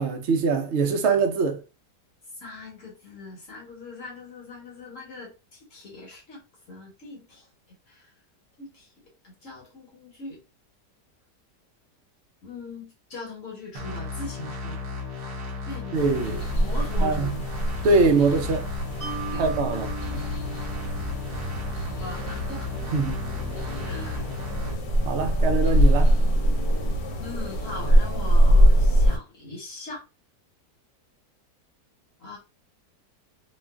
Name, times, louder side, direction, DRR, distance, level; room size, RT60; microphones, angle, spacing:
voice 1, 0.0-1.6 15.9-16.5 17.0-17.3 17.8-18.7 19.4-20.3 22.9-23.2 25.0-26.1, right 4 dB, 80° right, 0.5 m, -23 dB
voice 2, 2.3-7.5 7.9-8.1 8.6-10.4 12.4-14.9 15.6-17.4 19.3-19.5 21.9-22.7 23.8-24.2 27.2-30.0 32.2-32.4, left 2 dB, 55° left, 1.2 m, -41 dB
sound 1, 13.7-24.7, left 4 dB, 60° right, 1.2 m, -35 dB
sound 2, 15.9-29.2, equal, 85° left, 1.4 m, -23 dB
Mallet percussion, 19.0-22.3, right 4 dB, 20° right, 1.4 m, -39 dB
3.0 x 2.3 x 2.2 m
omnidirectional pair, 1.8 m